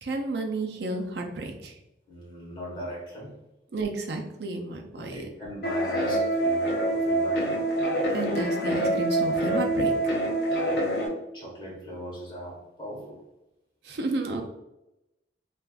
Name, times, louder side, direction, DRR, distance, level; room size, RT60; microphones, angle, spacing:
voice 1, 0.0-1.8 3.7-5.2 8.1-10.1 13.8-14.4, right 2 dB, 70° right, 3 dB, 0.5 m, -31 dB
voice 2, 2.1-3.3 4.9-7.6 10.5-10.9 11.3-13.2, equal, 30° left, -6 dB, 1.3 m, -38 dB
sound 1, 5.6-11.1, right 1 dB, 65° left, 0.6 m, -26 dB
3.4 x 2.5 x 2.3 m, 0.93 s
head